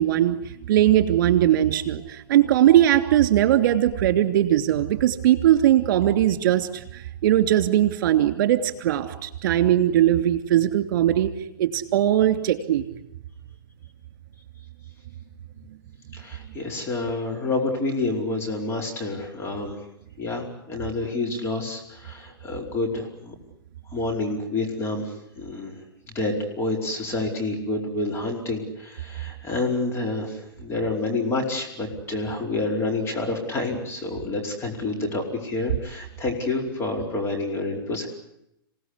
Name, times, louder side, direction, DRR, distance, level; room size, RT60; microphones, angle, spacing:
voice 1, 0.0-11.3 11.6-12.8, right 12 dB, 55° right, 9 dB, 3.0 m, -20 dB
voice 2, 16.1-19.8 20.2-23.3 23.9-25.8 26.1-38.1, left 2 dB, 20° left, 1 dB, 4.9 m, -28 dB
27.5 x 18.0 x 9.9 m, 0.80 s
hypercardioid pair, 125°, 12 cm